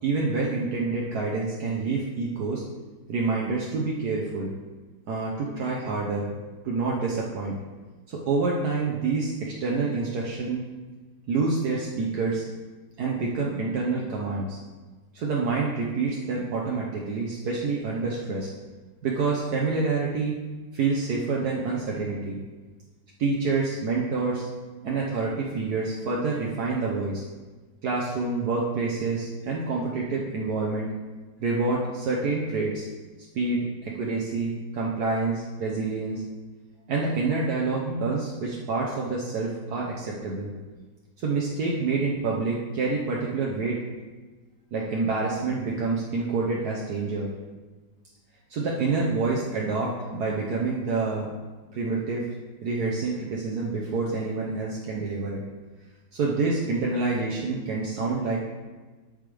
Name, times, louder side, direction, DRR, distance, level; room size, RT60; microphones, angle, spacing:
voice 1, 0.0-2.6 3.1-4.5 5.1-6.3 6.6-7.6 8.1-10.6 11.3-12.4 13.0-14.6 15.1-18.5 19.0-20.4 20.7-22.4 23.2-24.5 24.8-27.2 27.8-30.9 31.4-32.9 33.3-36.2 36.9-40.5 41.2-43.8 44.7-47.3 48.5-51.3 51.7-52.2 52.6-55.4 56.1-58.4, right 3 dB, 70° right, -3 dB, 1.5 m, -27 dB
13.0 x 5.4 x 3.4 m, 1.3 s
omnidirectional pair, 1.8 m